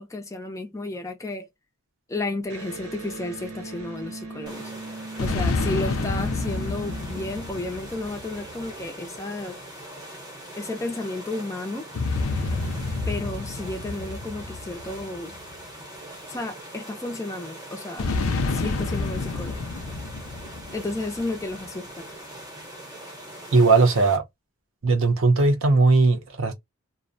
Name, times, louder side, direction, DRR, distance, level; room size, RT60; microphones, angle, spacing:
voice 1, 0.0-1.5 2.1-4.7 5.2-9.6 10.6-11.9 13.1-15.4 16.3-18.1 18.5-19.6 20.7-22.1, left 2 dB, 15° left, 0.4 m, -32 dB
Electric guitar, 2.5-8.0, right 3 dB, 85° right, 0.9 m, -39 dB
sound 1, 4.5-24.2, right 1 dB, 20° right, 0.7 m, -42 dB
sound 2, 5.2-8.8 11.9-15.6 18.0-21.4, left 3 dB, 75° left, 0.4 m, -29 dB
voice 2, 23.5-24.2 24.8-26.5, right 3 dB, 60° right, 0.6 m, -18 dB
2.4 x 2.0 x 2.5 m
head